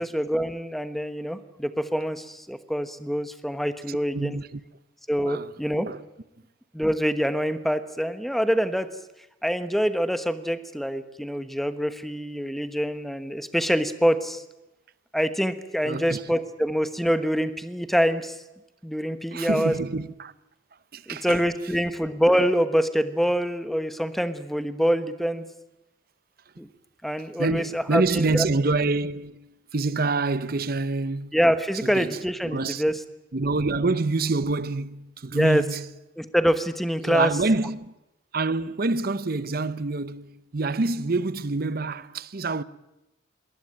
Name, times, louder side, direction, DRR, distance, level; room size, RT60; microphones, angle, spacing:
voice 1, 0.0-4.4 5.1-5.9 6.7-8.9 9.4-14.4 15.1-18.4 18.8-19.7 21.1-25.4 26.6-26.7 27.0-28.5 31.3-33.0 35.3-35.6 36.2-37.3, equal, ahead, 1.2 m, -25 dB
voice 2, 3.9-4.6 5.3-5.5 5.8-6.0 15.8-16.2 19.3-20.3 20.9-21.4 27.4-31.4 31.8-32.2 32.4-32.8 33.3-35.9 37.0-37.9 38.3-42.6, right 3 dB, 50° right, 0.8 m, -27 dB
21.5 x 19.0 x 8.9 m
head